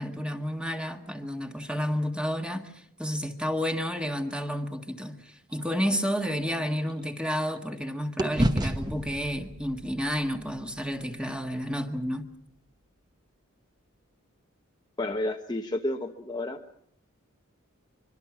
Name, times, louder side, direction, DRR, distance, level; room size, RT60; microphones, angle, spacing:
voice 1, 0.0-12.3, equal, 5° right, 1.7 m, -31 dB
sound 1, 5.5-7.8 8.2-12.4, right 1 dB, 20° right, 1.1 m, -33 dB
voice 2, 15.0-16.6, left 1 dB, 20° left, 1.0 m, -31 dB
25.0 x 23.5 x 6.1 m
head